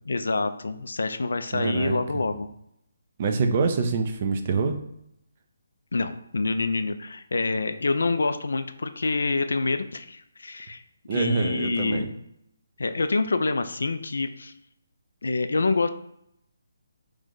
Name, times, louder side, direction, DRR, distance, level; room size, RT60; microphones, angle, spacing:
voice 1, 0.1-2.5 5.9-10.8 11.1-12.1 12.8-14.5 15.2-15.9, left 3 dB, 70° left, 9 dB, 0.3 m, -26 dB
voice 2, 1.5-2.2 3.2-4.8 11.1-12.1, right 4 dB, 40° right, 6 dB, 0.5 m, -26 dB
3.1 x 2.5 x 3.7 m, 0.76 s
figure-of-eight pair, 145°, 0 cm